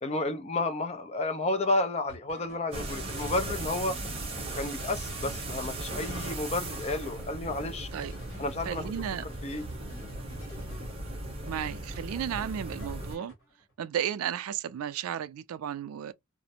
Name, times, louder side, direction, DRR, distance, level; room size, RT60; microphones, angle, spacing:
voice 1, 0.0-4.0 4.6-7.9 8.4-8.9 9.4-9.7, left 2 dB, 30° left, 0.5 m, -31 dB
sound 1, 2.1-8.9 9.3-11.3 11.7-13.7, equal, 65° left, 1.2 m, -51 dB
sound 2, 2.7-13.2, right 2 dB, 25° right, 0.8 m, -37 dB
voice 2, 8.6-9.2 11.5-13.3 13.8-16.1, right 9 dB, 80° right, 0.3 m, -33 dB
2.4 x 2.1 x 2.8 m
head